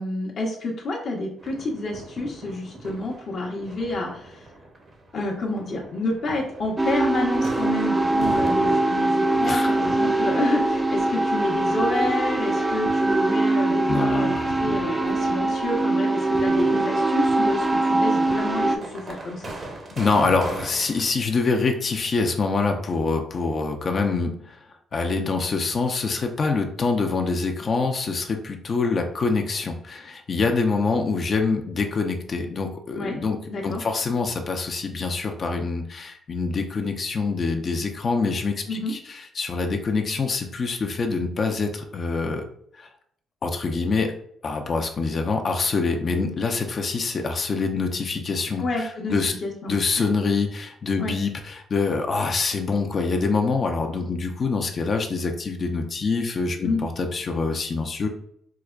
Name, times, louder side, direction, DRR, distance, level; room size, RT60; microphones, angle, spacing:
voice 1, 0.0-4.5 5.1-14.3 14.6-19.5 32.9-33.2 33.5-33.8 38.7-38.9 48.6-49.1 49.4-50.1 51.0-51.2 56.6-56.8, left 2 dB, 60° left, -3 dB, 0.8 m, -29 dB
sound 1, 1.4-21.0, right 2 dB, 45° right, 0.7 m, -41 dB
sound 2, 6.8-18.8, right 2 dB, 20° right, 0.4 m, -22 dB
voice 2, 9.4-9.8 13.9-14.5 20.0-24.6 24.9-33.4 33.6-42.4 42.8-42.9 43.4-44.1 44.4-49.3 49.7-58.1, left 4 dB, 45° left, 4 dB, 0.5 m, -25 dB
4.7 x 2.1 x 2.4 m, 0.68 s
cardioid pair, 90°, 0 cm